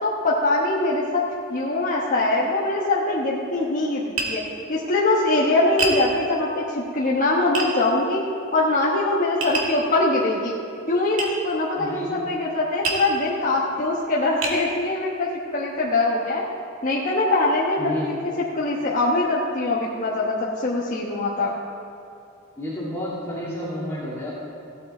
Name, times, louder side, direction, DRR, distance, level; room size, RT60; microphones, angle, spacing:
voice 1, 0.0-1.2 1.5-4.4 4.7-8.2 8.5-10.5 10.9-16.4 16.8-17.9 18.5-21.5, left 2 dB, 40° left, -6 dB, 1.2 m, -22 dB
Tap, 4.2-4.4 5.8-6.0 7.5-7.7 9.4-9.8 11.2-11.3 12.8-13.1 13.8-13.9 14.4-14.6, right 3 dB, 65° right, 2.1 m, -25 dB
voice 2, 11.8-12.2 17.8-18.1 22.6-24.3, left 1 dB, 15° left, -9 dB, 2.3 m, -30 dB
16.0 x 8.5 x 4.4 m, 2.7 s
head